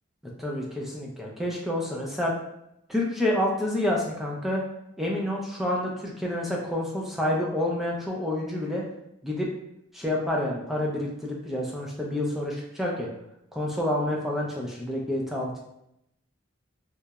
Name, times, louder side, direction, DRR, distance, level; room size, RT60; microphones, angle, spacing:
voice 1, 0.4-2.4 2.9-4.6 5.0-8.8 9.2-9.5 9.9-13.1 13.5-15.6, left 1 dB, ahead, -3 dB, 0.3 m, -28 dB
2.7 x 2.0 x 2.3 m, 0.80 s
head